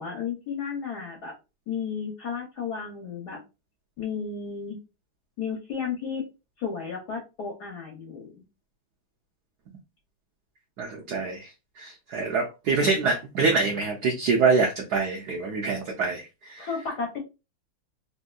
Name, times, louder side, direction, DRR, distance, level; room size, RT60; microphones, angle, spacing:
voice 1, 0.0-1.3 1.7-3.4 4.0-4.8 5.4-6.2 6.6-8.3 16.6-17.2, left 6 dB, 65° left, 0 dB, 1.1 m, -33 dB
voice 2, 10.8-11.5 11.8-16.7, right 4 dB, 75° right, 1 dB, 0.9 m, -25 dB
3.4 x 2.6 x 2.3 m, 0.28 s
omnidirectional pair, 2.3 m